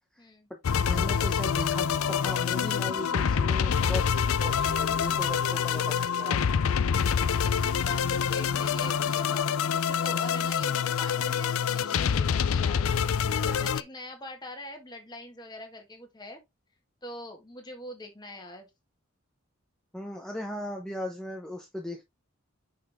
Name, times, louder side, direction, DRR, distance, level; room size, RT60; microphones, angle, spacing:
voice 1, 0.2-0.5 7.8-12.9 13.3-16.4 17.0-18.7, left 1 dB, 20° left, 1.8 m, -43 dB
sound 1, 0.6-13.8, left 7 dB, 85° left, 0.4 m, -26 dB
voice 2, 0.7-6.4 19.9-22.0, left 1 dB, 5° left, 0.8 m, -38 dB
6.4 x 5.5 x 3.5 m
head